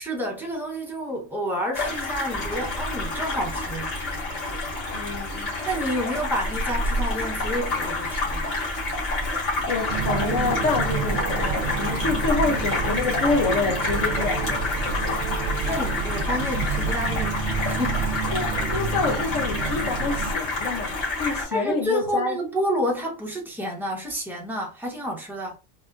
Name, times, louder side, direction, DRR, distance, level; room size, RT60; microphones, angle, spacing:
voice 1, 0.0-3.9 5.6-8.5 15.6-18.1 21.5-25.6, equal, ahead, 0.5 m, -29 dB
sound 1, 1.7-21.4, left 3 dB, 50° left, 1.4 m, -29 dB
sound 2, 2.3-21.1, right 1 dB, 40° right, 1.0 m, -37 dB
voice 2, 4.9-5.5 9.2-14.7 18.3-22.4, left 4 dB, 75° left, 1.0 m, -27 dB
sound 3, 9.9-20.3, right 5 dB, 65° right, 0.8 m, -29 dB
3.5 x 2.4 x 2.3 m
omnidirectional pair, 1.4 m